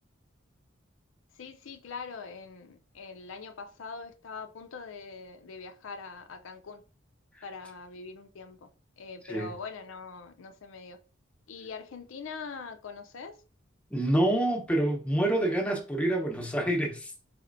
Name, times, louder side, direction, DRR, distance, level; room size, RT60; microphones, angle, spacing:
voice 1, 1.4-6.8 7.4-8.7 9.0-11.0 11.5-13.4, left 4 dB, 70° left, 0.5 m, -43 dB
voice 2, 13.9-17.1, right 1 dB, 5° left, 0.8 m, -27 dB
4.2 x 4.1 x 2.6 m
head